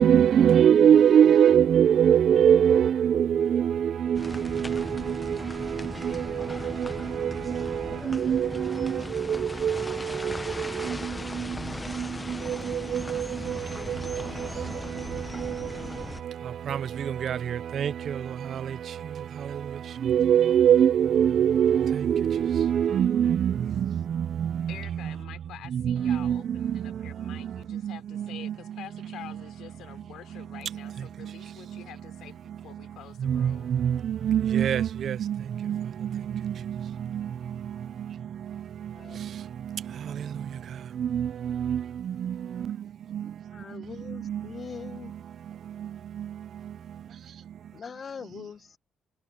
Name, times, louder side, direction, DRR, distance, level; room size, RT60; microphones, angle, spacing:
voice 1, 0.0-25.2 25.7-29.4 30.3-31.4 31.7-31.8 33.2-40.5 40.9-42.8 43.1-43.3 43.7-44.5 45.7-46.7, right 9 dB, 60° right, 0.6 m, -25 dB
sound 1, 4.1-16.2, left 2 dB, 15° left, 0.7 m, -37 dB
voice 2, 24.7-33.7, left 12 dB, 80° left, 4.6 m, -47 dB
voice 3, 43.5-45.1 47.7-48.8, left 6 dB, 45° left, 1.0 m, -41 dB
cardioid pair, 90°, 0 cm